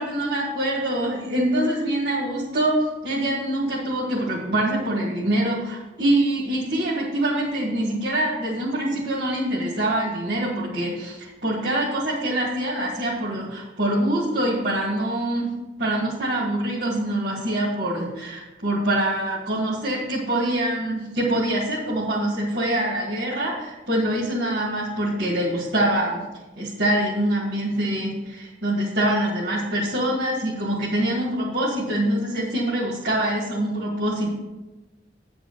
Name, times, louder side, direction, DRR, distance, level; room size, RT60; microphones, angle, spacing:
voice 1, 0.0-26.2 26.6-34.3, right 1 dB, 60° right, -7 dB, 2.2 m, -24 dB
9.7 x 4.9 x 6.8 m, 1.1 s
head